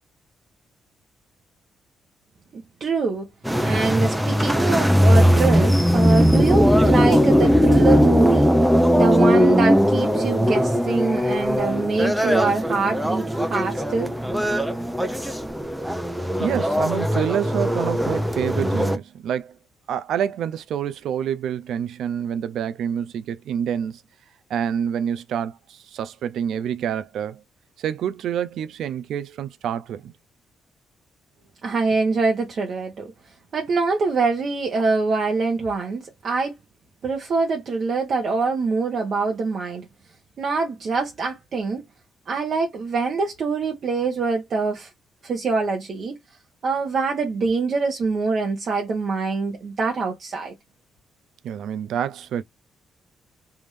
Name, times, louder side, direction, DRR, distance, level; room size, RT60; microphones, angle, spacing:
voice 1, 2.5-3.3 3.6-8.5 8.9-14.1 31.6-33.1 33.5-36.6 37.0-39.9 40.4-41.8 42.3-44.9 45.2-46.2 46.6-50.5, right 4 dB, 50° right, 1.0 m, -24 dB
sound 1, 3.4-19.0, equal, 5° right, 0.7 m, -19 dB
voice 2, 16.4-19.6 19.9-24.0 24.5-27.4 27.8-30.1 51.4-52.4, right 9 dB, 75° right, 0.4 m, -27 dB
3.5 x 2.5 x 3.2 m
cardioid pair, 110°, 0 cm